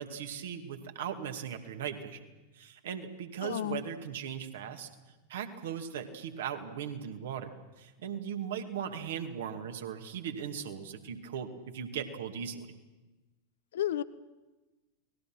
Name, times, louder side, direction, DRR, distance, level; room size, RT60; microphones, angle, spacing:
voice 1, 0.0-2.2 2.5-4.9 5.3-12.7, right 8 dB, 60° right, 6 dB, 2.5 m, -38 dB
voice 2, 3.4-3.8 13.7-14.0, left 12 dB, 60° left, 16 dB, 0.9 m, -32 dB
29.5 x 20.5 x 6.1 m, 1.1 s
figure-of-eight pair, 90°, 0 cm